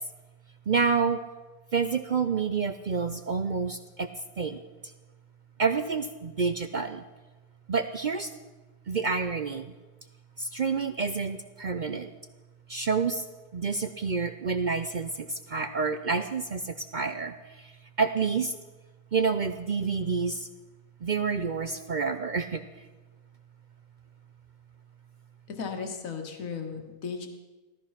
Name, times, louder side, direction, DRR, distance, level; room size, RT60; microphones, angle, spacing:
voice 1, 0.7-1.2 1.7-4.1 4.4-4.6 5.6-7.0 7.7-8.3 8.9-9.7 10.4-12.1 12.7-13.2 13.5-17.7 18.0-18.5 19.1-20.5 21.0-22.6, right 5 dB, 70° right, 9 dB, 0.4 m, -28 dB
voice 2, 25.5-27.3, left 5 dB, 60° left, 4 dB, 1.9 m, -35 dB
16.0 x 13.0 x 5.8 m, 1.2 s
omnidirectional pair, 1.6 m